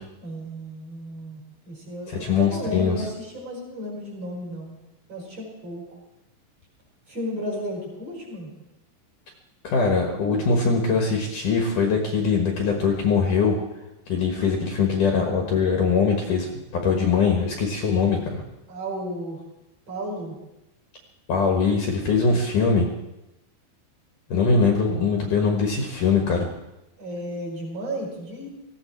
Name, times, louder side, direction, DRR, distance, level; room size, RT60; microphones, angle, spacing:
voice 1, 0.2-4.7 5.1-5.8 7.1-8.5 18.7-19.4 19.9-20.4 27.0-28.5, equal, 35° right, -2 dB, 5.7 m, -33 dB
voice 2, 2.2-3.1 9.6-13.6 14.1-16.5 16.8-18.4 21.3-22.9 24.3-26.4, left 5 dB, 60° left, 2 dB, 2.6 m, -22 dB
18.5 x 16.0 x 4.5 m, 0.95 s
omnidirectional pair, 4.9 m